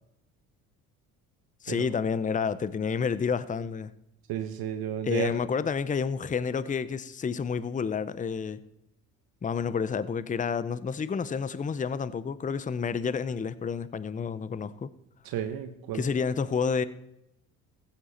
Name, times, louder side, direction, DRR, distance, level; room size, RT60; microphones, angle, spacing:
voice 1, 1.6-3.9 5.0-8.6 9.4-14.9 15.9-16.8, left 6 dB, 20° left, 0.6 m, -29 dB
voice 2, 4.3-5.3 15.2-16.1, right 10 dB, 65° right, 1.2 m, -32 dB
15.5 x 8.9 x 4.2 m
hypercardioid pair, 60°, 40 cm